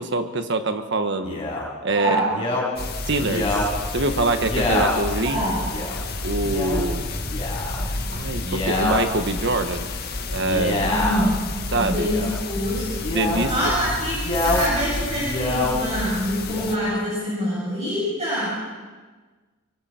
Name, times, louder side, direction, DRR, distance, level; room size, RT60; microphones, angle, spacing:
voice 1, 0.0-1.4 1.8-2.2 3.1-5.4 6.2-7.2 8.1-9.9 10.3-10.9 11.7-12.1 13.1-13.5, right 2 dB, 55° right, 8 dB, 1.4 m, -24 dB
Male speech man speaking, 1.2-1.7 2.3-2.6 3.2-3.7 4.4-4.9 5.7-5.9 6.4-6.8 7.2-7.8 8.3-9.0 10.3-11.3 11.9-12.4 13.0-13.5 14.1-14.6 15.1-15.7 16.4-17.0, left 2 dB, 25° left, 5.3 m, -26 dB
voice 2, 1.9-2.3 5.2-5.7 7.8-8.2 10.9-11.5 11.7-13.0 13.5-18.5, equal, 30° right, -7 dB, 7.5 m, -25 dB
sound 1, 2.8-16.8, left 2 dB, 45° left, 1.8 m, -30 dB
25.0 x 24.0 x 4.5 m, 1.3 s
head